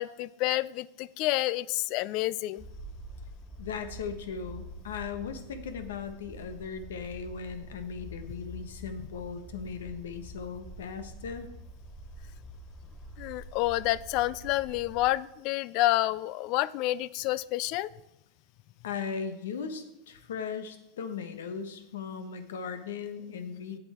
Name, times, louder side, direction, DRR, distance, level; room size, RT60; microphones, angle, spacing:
voice 1, 0.0-2.6 13.2-17.9, left 16 dB, 55° left, 19 dB, 0.3 m, -29 dB
sound 1, 2.6-15.1, equal, 5° right, 2.0 m, -46 dB
voice 2, 3.6-11.5 18.8-23.8, left 6 dB, 90° left, 9 dB, 1.1 m, -38 dB
8.0 x 7.9 x 4.3 m, 0.91 s
supercardioid pair, 125°, 0 cm